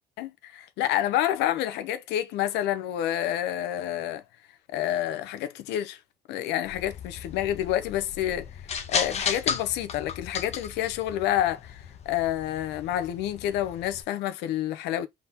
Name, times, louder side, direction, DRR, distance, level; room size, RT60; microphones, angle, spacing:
voice 1, 0.2-4.2 4.7-6.0 6.3-15.1, left 12 dB, 90° left, 0.7 m, -28 dB
sound 1, 6.6-14.0, left 6 dB, 40° left, 0.9 m, -35 dB
4.0 x 3.7 x 2.8 m
cardioid pair, 110°, 17 cm